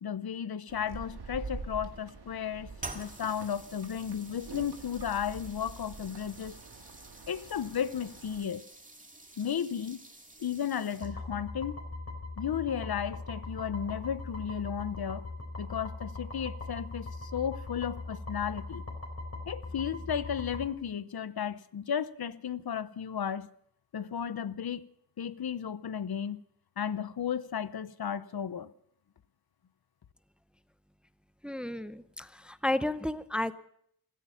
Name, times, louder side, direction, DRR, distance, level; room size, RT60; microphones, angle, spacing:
voice 1, 0.0-6.6 7.3-8.6 9.4-10.0 10.4-11.8 12.4-15.3 15.6-18.8 19.5-23.5 23.9-24.8 25.2-26.4 26.8-28.7, left 8 dB, 70° left, 0.7 m, -34 dB
sound 1, 0.7-8.4, right 4 dB, 90° right, 2.0 m, -46 dB
sound 2, 2.8-11.4, right 2 dB, 20° right, 2.1 m, -49 dB
sound 3, 11.0-20.7, left 3 dB, 40° left, 4.3 m, -40 dB
voice 2, 31.4-33.5, left 1 dB, 5° right, 0.6 m, -32 dB
16.0 x 14.5 x 5.6 m
wide cardioid pair, 95°, 38 cm